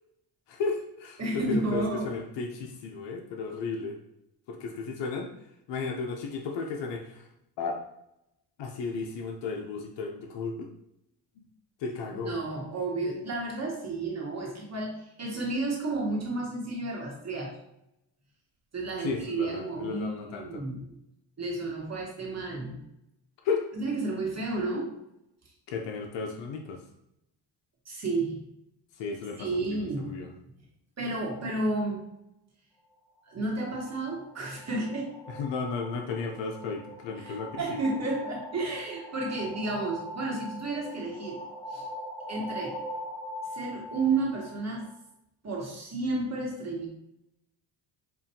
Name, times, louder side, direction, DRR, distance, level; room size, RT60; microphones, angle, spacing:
voice 1, 0.5-4.0 4.5-5.3 5.7-7.3 7.6-7.8 8.6-10.7 11.4-11.5 11.8-12.3 19.0-20.6 23.4-23.6 25.7-26.8 29.0-30.3 35.3-37.8, left 4 dB, 70° left, 2 dB, 0.7 m, -34 dB
voice 2, 1.2-2.1 12.1-17.5 18.7-20.9 21.4-22.8 23.8-24.9 27.8-28.4 29.4-30.2 31.0-32.0 33.2-35.2 37.2-41.4 41.7-41.9 42.3-42.8 43.5-44.9 45.4-46.9, right 2 dB, 35° right, -2 dB, 1.3 m, -32 dB
sound 1, 33.3-45.0, equal, 5° left, 0.3 m, -42 dB
5.5 x 2.5 x 2.7 m, 0.82 s
cardioid pair, 75°, 45 cm